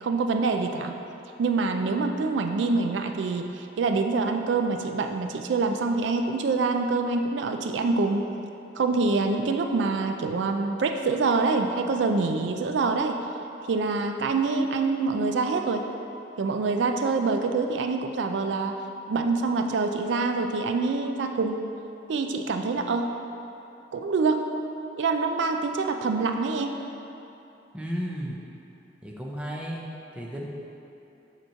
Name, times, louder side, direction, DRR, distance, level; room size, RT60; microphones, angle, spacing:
voice 1, 0.0-1.0 1.4-8.3 8.8-13.2 13.7-15.9 16.4-18.8 19.1-21.7 22.1-23.1 23.9-24.5 25.0-26.8, right 4 dB, 75° right, 5 dB, 0.4 m, -25 dB
voice 2, 27.7-28.4 29.0-29.8 30.1-30.4, equal, 5° right, -3 dB, 0.6 m, -33 dB
7.8 x 3.0 x 5.6 m, 2.9 s
head